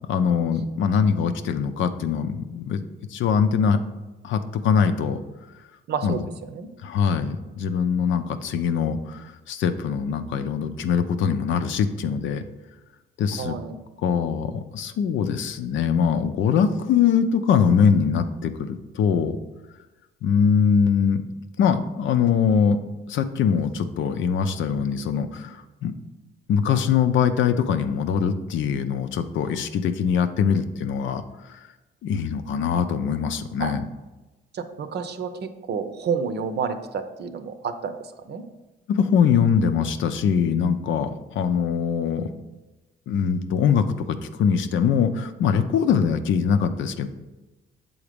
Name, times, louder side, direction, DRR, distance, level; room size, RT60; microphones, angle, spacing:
voice 1, 0.1-2.8 3.1-3.8 4.2-5.2 6.0-6.2 6.8-12.4 13.2-13.6 14.0-19.4 20.2-21.2 21.6-22.8 23.1-25.9 26.5-31.2 32.0-33.8 38.9-42.3 43.1-47.1, left 7 dB, 75° left, 9 dB, 0.6 m, -22 dB
voice 2, 5.9-6.2 6.5-6.7 13.4-13.8 33.6-33.7 34.5-37.9 38.3-38.4, right 6 dB, 55° right, 9 dB, 0.7 m, -29 dB
7.2 x 3.9 x 5.1 m, 1.1 s
cardioid pair, 90°, 20 cm